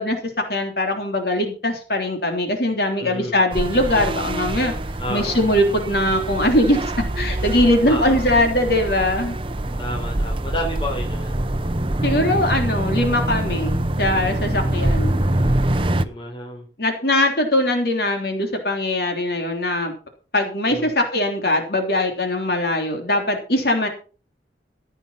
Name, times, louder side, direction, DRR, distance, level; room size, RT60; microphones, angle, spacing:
voice 1, 0.0-4.7 5.1-9.4 12.0-15.2 16.8-19.9 20.3-23.9, left 1 dB, 60° left, 4 dB, 3.3 m, -21 dB
voice 2, 3.0-3.5 5.0-5.4 7.9-8.2 9.8-11.5 15.7-16.7 20.7-20.9, left 1 dB, 30° left, 1 dB, 4.3 m, -31 dB
sound 1, 3.5-16.1, right 1 dB, 30° right, 0.8 m, -24 dB
15.0 x 9.1 x 5.7 m, 0.38 s
head